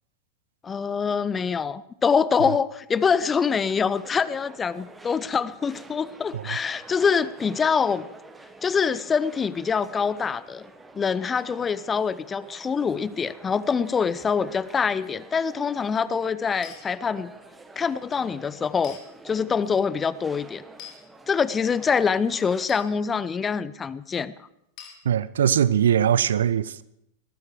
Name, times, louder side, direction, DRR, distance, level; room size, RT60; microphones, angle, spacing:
voice 1, 0.6-8.1 8.6-10.7 10.9-17.3 17.8-19.0 19.2-20.6 21.3-24.3, left 6 dB, 20° left, 0.6 m, -25 dB
sound 1, 2.9-22.7, right 3 dB, 10° right, 1.5 m, -48 dB
sound 2, 16.6-16.8 18.8-19.0 20.8-21.0 22.7-22.9 24.8-25.0, left 9 dB, 40° left, 4.2 m, -41 dB
voice 2, 25.0-26.8, right 9 dB, 65° right, 0.6 m, -21 dB
19.5 x 14.5 x 4.8 m
figure-of-eight pair, 90°, 0 cm